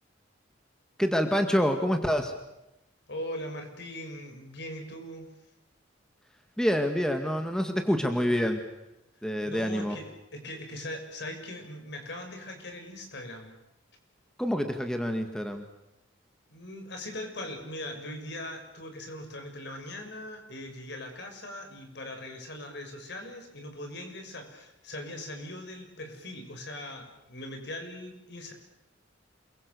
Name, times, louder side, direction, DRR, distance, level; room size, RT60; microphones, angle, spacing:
voice 1, 1.0-2.3 6.6-8.6 9.2-10.0 14.4-15.6, equal, 5° left, 5 dB, 2.0 m, -27 dB
voice 2, 3.1-5.3 9.4-13.5 16.5-28.5, left 1 dB, 60° left, 4 dB, 6.5 m, -40 dB
28.0 x 23.5 x 7.0 m, 0.90 s
head